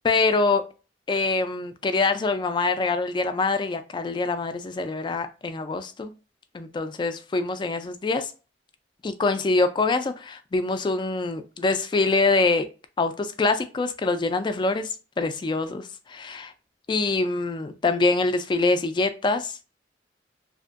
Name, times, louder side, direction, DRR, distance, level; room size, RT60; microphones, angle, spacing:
voice 1, 0.0-0.6 1.1-6.1 6.5-8.3 9.0-12.7 13.0-14.9 15.2-16.5 16.9-19.6, left 3 dB, 25° left, 9 dB, 0.3 m, -24 dB
2.8 x 2.5 x 2.4 m, 0.33 s
head